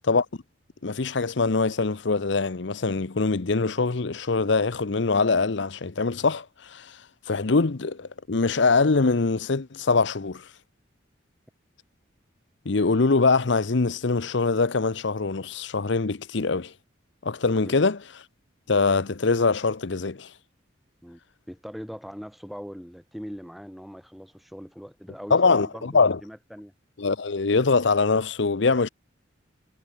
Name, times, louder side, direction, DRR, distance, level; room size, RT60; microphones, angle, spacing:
voice 1, 0.8-7.0 7.3-10.5 12.6-16.7 17.2-18.0 18.7-20.3 25.3-26.2 27.0-28.9, left 4 dB, 65° left, 0.8 m, -23 dB
voice 2, 21.5-26.7, equal, ahead, 3.0 m, -41 dB
head